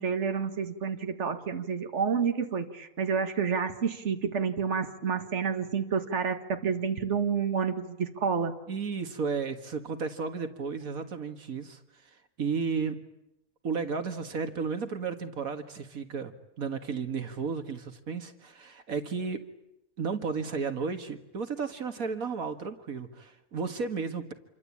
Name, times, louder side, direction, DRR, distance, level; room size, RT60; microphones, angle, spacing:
voice 1, 0.0-8.5, right 6 dB, 55° right, 7 dB, 2.1 m, -29 dB
voice 2, 8.7-11.8 12.4-13.0 13.6-16.3 16.6-19.4 20.0-24.3, right 5 dB, 80° right, 8 dB, 2.2 m, -33 dB
28.0 x 24.0 x 8.6 m, 0.86 s
omnidirectional pair, 1.5 m